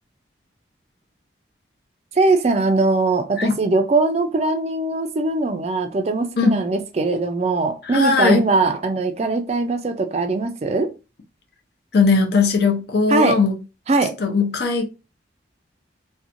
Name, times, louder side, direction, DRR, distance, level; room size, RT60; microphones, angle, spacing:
voice 1, 2.2-10.9 13.1-13.4 13.9-14.1, right 3 dB, 35° right, 0.4 m, -20 dB
voice 2, 7.9-8.4 11.9-13.5 14.2-14.8, left 4 dB, 55° left, 0.5 m, -18 dB
2.9 x 2.2 x 2.5 m
head